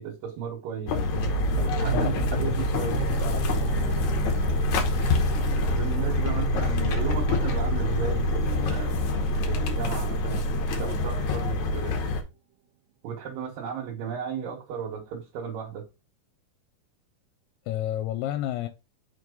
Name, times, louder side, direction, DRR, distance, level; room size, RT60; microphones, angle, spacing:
voice 1, 0.0-1.4 1.8-3.3 5.7-9.0 9.5-12.2 13.0-15.9, right 7 dB, 65° right, 2.8 m, -35 dB
sound 1, 0.9-12.2, left 2 dB, 70° left, 1.8 m, -26 dB
sound 2, 0.9-10.3, right 9 dB, 90° right, 1.8 m, -35 dB
voice 2, 1.9-3.4 17.7-18.7, left 13 dB, 90° left, 2.6 m, -32 dB
5.6 x 4.5 x 3.7 m
omnidirectional pair, 4.6 m